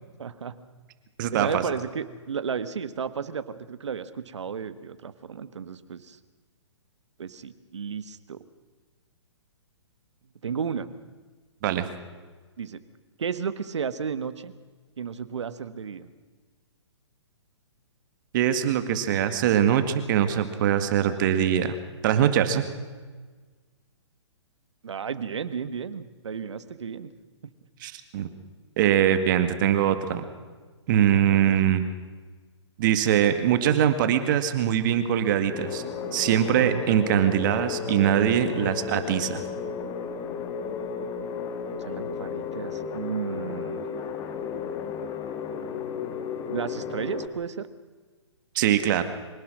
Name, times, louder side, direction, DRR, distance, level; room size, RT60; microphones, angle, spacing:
voice 1, 0.2-0.5 1.3-6.2 7.2-8.4 10.4-10.9 12.6-12.8 13.2-14.5 15.0-16.1 24.8-27.1 27.4-27.5 31.2-31.6 41.8-43.8 46.5-47.7, right 6 dB, 70° right, 12 dB, 1.6 m, -33 dB
voice 2, 1.2-1.6 11.6-11.9 18.3-19.8 20.1-21.8 22.0-22.6 27.8-28.3 28.8-30.2 30.9-31.9 32.8-35.8 36.1-39.4 48.6-49.0, right 10 dB, 45° right, 9 dB, 2.0 m, -22 dB
sound 1, 35.5-47.3, left 6 dB, 25° left, 1.9 m, -33 dB
25.0 x 18.0 x 6.3 m, 1.4 s
hypercardioid pair, 130°, 15 cm